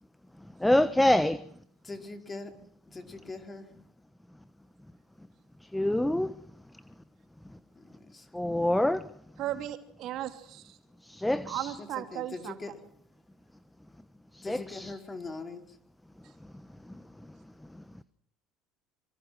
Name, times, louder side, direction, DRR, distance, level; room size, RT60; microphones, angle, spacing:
voice 1, 0.6-1.4 5.7-6.3 8.3-9.0 11.0-11.8 14.4-14.9, left 1 dB, 5° left, 14 dB, 1.2 m, -26 dB
voice 2, 1.8-2.5 2.9-3.7 7.7-8.3 11.8-12.7 14.4-15.6, left 3 dB, 25° left, 5 dB, 4.8 m, -41 dB
voice 3, 9.4-10.8 11.5-12.6, right 12 dB, 60° right, 7 dB, 2.7 m, -36 dB
27.0 x 24.5 x 6.2 m, 0.64 s
hypercardioid pair, 70°, 0 cm